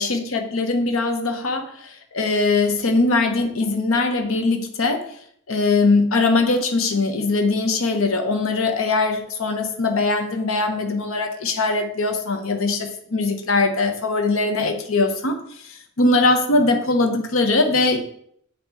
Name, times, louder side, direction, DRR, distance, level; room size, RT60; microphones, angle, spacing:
voice 1, 0.0-5.1 5.5-15.4 15.6-18.0, left 3 dB, 80° left, 5 dB, 0.8 m, -21 dB
8.0 x 2.9 x 4.5 m, 0.66 s
head